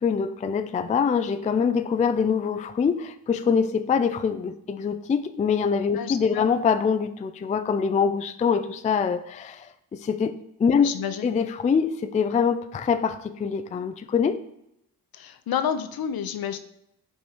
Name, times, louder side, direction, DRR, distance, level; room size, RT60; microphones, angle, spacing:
voice 1, 0.0-11.0 11.2-14.4, left 6 dB, 20° left, 0.3 m, -24 dB
voice 2, 5.9-6.4 10.8-11.3 15.1-16.6, left 8 dB, 65° left, 0.7 m, -29 dB
5.3 x 4.3 x 4.6 m
cardioid pair, 75°, 40 cm